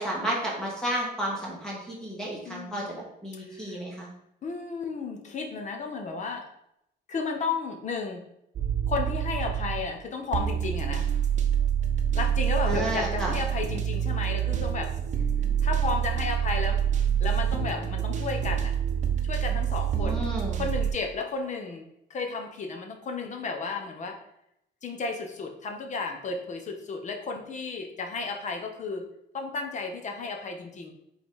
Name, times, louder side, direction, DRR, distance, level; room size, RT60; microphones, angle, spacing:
voice 1, 0.0-4.1 12.6-13.3 19.9-20.6, right 1 dB, 5° left, -4 dB, 1.4 m, -32 dB
voice 2, 2.4-2.9 3.4-3.8 4.4-6.5 7.1-8.2 8.9-11.1 12.1-14.9 15.6-16.8 17.2-18.7 19.3-20.2 20.6-24.2 24.8-29.0 29.3-30.9, left 4 dB, 40° left, 3 dB, 0.9 m, -33 dB
sound 1, 8.6-9.9 10.3-20.9, right 9 dB, 40° right, 0.8 m, -27 dB
5.1 x 4.0 x 4.7 m, 0.79 s
cardioid pair, 150°, 19 cm